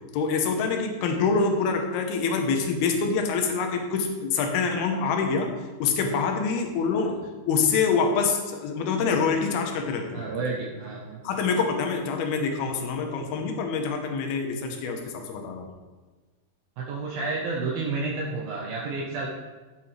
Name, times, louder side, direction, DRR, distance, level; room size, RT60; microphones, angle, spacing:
voice 1, 0.1-5.5 5.8-10.2 11.2-15.7, left 5 dB, 75° left, 4 dB, 3.0 m, -26 dB
voice 2, 10.1-11.2 16.8-19.3, right 3 dB, 70° right, -3 dB, 2.7 m, -30 dB
15.0 x 7.5 x 3.4 m, 1.3 s
omnidirectional pair, 4.6 m